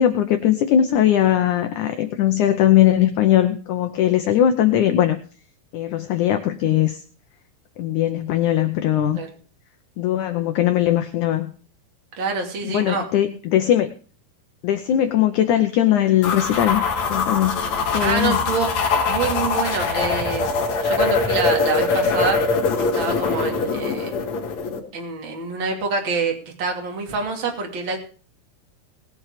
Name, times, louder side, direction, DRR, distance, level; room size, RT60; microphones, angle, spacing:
voice 1, 0.0-5.2 5.7-7.0 7.8-9.2 10.0-11.5 12.6-13.9 14.6-16.8 17.1-17.6 17.9-18.4, left 11 dB, 75° left, 7 dB, 1.8 m, -19 dB
voice 2, 12.2-13.0 18.0-18.7 19.0-20.4 20.8-22.4 22.8-24.1 24.9-28.0, right 4 dB, 35° right, 2 dB, 3.0 m, -26 dB
sound 1, 16.2-24.8, left 4 dB, 50° left, 3.2 m, -22 dB
19.5 x 7.4 x 5.0 m, 0.40 s
omnidirectional pair, 4.6 m